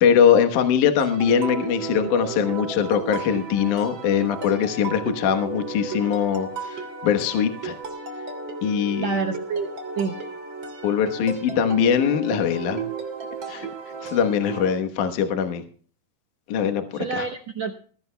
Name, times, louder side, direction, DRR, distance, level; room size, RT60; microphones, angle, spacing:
voice 1, 0.0-7.8 8.6-9.2 10.8-12.8 13.5-13.7 14.0-15.6 16.5-17.2, left 8 dB, 65° left, 6 dB, 2.2 m, -22 dB
sound 1, 1.0-14.7, right 4 dB, 35° right, 2.9 m, -34 dB
voice 2, 9.0-9.7 10.0-10.2 16.9-17.7, right 5 dB, 85° right, 4 dB, 1.5 m, -27 dB
21.0 x 15.5 x 2.2 m, 0.44 s
omnidirectional pair, 4.6 m